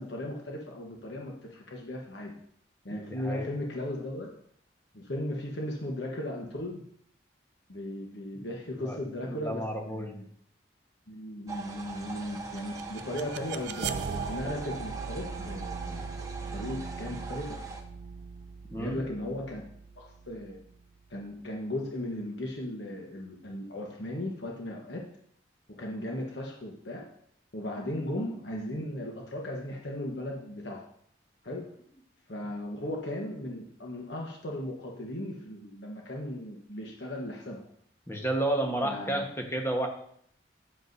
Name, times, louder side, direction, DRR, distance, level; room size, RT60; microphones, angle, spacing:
voice 1, 0.0-2.3 2.8-4.4 4.9-6.8 7.7-10.2 11.1-17.6 18.8-19.6 20.0-20.6 21.1-25.0 25.7-27.1 27.5-30.8 31.4-31.7 32.3-37.7 38.8-39.3, left 1 dB, 70° left, 0 dB, 1.2 m, -37 dB
voice 2, 2.9-3.5 8.8-9.0 9.3-10.2 18.7-19.0 38.1-39.9, right 1 dB, 15° left, 1 dB, 1.2 m, -31 dB
sound 1, 11.5-17.8, right 4 dB, 15° right, 0.9 m, -42 dB
sound 2, 12.4-21.3, right 5 dB, 65° right, 0.4 m, -39 dB
9.9 x 7.7 x 2.7 m, 0.65 s
head